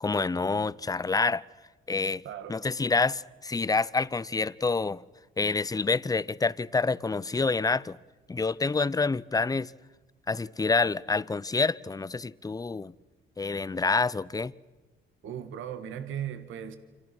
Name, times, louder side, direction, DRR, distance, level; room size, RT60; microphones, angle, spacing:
voice 1, 0.0-1.4 1.9-2.2 2.5-5.0 5.4-8.0 8.3-9.7 10.3-12.9 13.4-14.5, left 4 dB, 20° left, 0.7 m, -27 dB
voice 2, 2.2-2.6 15.2-16.8, right 9 dB, 80° right, 1.9 m, -37 dB
29.0 x 26.0 x 6.2 m
cardioid pair, 90°, 20 cm